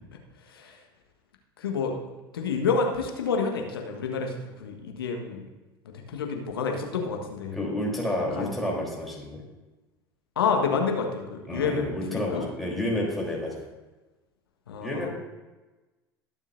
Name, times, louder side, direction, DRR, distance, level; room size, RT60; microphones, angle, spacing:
voice 1, 1.6-2.0 2.3-5.4 6.1-7.6 8.4-8.5 10.4-11.8 12.1-12.4 14.7-15.1, left 5 dB, 75° left, 2 dB, 1.4 m, -28 dB
voice 2, 7.5-9.4 11.5-13.6 14.8-15.1, left 1 dB, ahead, -4 dB, 3.5 m, -30 dB
21.0 x 7.1 x 2.6 m, 1.2 s
figure-of-eight pair, 75°, 12 cm